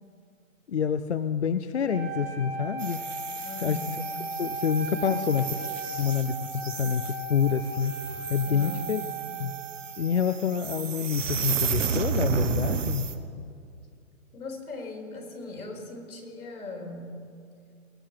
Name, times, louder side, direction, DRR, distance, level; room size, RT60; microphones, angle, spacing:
voice 1, 0.7-3.0 3.6-4.0 4.3-5.5 6.0-8.0 8.3-9.0 9.4-9.6 10.0-13.1, left 7 dB, 55° left, 11 dB, 0.5 m, -27 dB
Wind instrument woodwind instrument, 1.8-10.1, right 2 dB, 10° right, 0.7 m, -37 dB
sound 1, 2.8-13.1, right 6 dB, 60° right, 1.0 m, -33 dB
voice 2, 3.4-4.0 8.5-9.0 13.0-13.3 14.3-17.1, left 2 dB, 75° left, 1 dB, 3.7 m, -39 dB
21.5 x 8.6 x 4.8 m, 2.4 s
hypercardioid pair, 170°, 43 cm